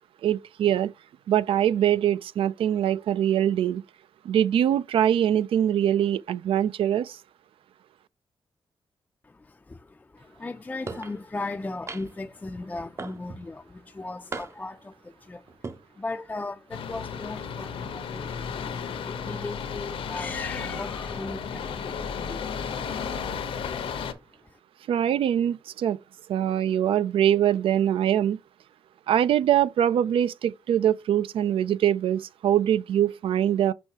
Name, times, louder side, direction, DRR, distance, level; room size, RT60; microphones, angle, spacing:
voice 1, 0.2-0.9 1.3-3.8 4.2-7.2 24.9-26.0 26.3-28.4 29.1-33.7, right 10 dB, 90° right, 0.4 m, -23 dB
voice 2, 9.2-22.8 23.4-24.6, left 3 dB, 15° left, 0.3 m, -38 dB
sound 1, 10.9-11.2 11.9-12.3 13.0-13.5 14.3-14.8 15.5-15.8, right 4 dB, 30° right, 0.5 m, -37 dB
sound 2, 16.7-24.1, left 6 dB, 85° left, 0.9 m, -33 dB
6.2 x 5.6 x 2.8 m
cardioid pair, 110°, 9 cm